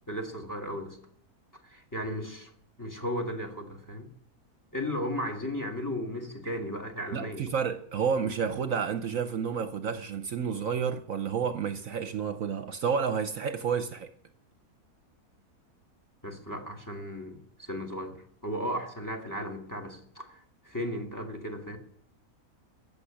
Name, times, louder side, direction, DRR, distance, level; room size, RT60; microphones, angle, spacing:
voice 1, 0.1-1.0 1.6-2.5 2.8-4.1 4.7-7.5 16.2-21.8, equal, 10° left, 2.1 m, -35 dB
voice 2, 7.1-14.1, right 6 dB, 65° right, 1.1 m, -30 dB
15.0 x 7.1 x 10.0 m
omnidirectional pair, 1.6 m